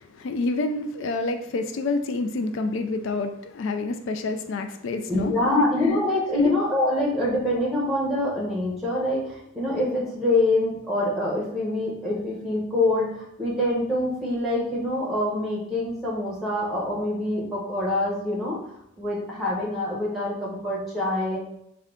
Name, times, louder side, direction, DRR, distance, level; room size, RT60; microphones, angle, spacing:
voice 1, 0.0-5.7 6.3-6.5, left 3 dB, 60° left, 7 dB, 0.3 m, -28 dB
voice 2, 5.1-18.6 19.0-21.4, left 1 dB, ahead, -4 dB, 0.8 m, -25 dB
3.6 x 2.2 x 3.6 m, 0.77 s
head